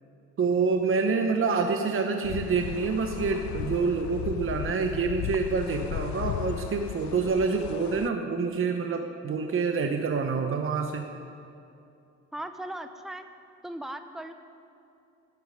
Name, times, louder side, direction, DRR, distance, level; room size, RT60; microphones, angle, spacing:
voice 1, 0.4-11.0, right 4 dB, 45° right, 5 dB, 1.0 m, -27 dB
sound 1, 2.2-8.1, left 14 dB, 70° left, 0.4 m, -36 dB
voice 2, 12.3-13.3 13.6-14.3, right 1 dB, ahead, 8 dB, 0.8 m, -37 dB
12.0 x 8.3 x 9.8 m, 2.7 s
cardioid pair, 90°, 30 cm